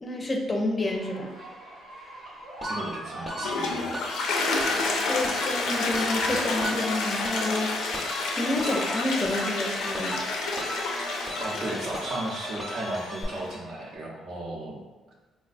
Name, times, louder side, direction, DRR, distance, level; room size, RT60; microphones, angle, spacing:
voice 1, 0.0-1.3 5.1-7.7 8.4-10.2, left 2 dB, 25° left, 1 dB, 0.4 m, -29 dB
sound 1, 0.8-13.9, equal, 85° right, 1.2 m, -45 dB
sound 2, 2.6-13.2, right 1 dB, 15° right, 0.7 m, -37 dB
voice 2, 2.6-3.8 11.4-14.8 15.1-15.2, right 1 dB, 70° right, -3 dB, 0.8 m, -35 dB
Toilet flush, 3.2-13.6, left 3 dB, 85° left, 0.4 m, -30 dB
3.5 x 2.2 x 2.5 m, 1.2 s
cardioid pair, 90°, 0 cm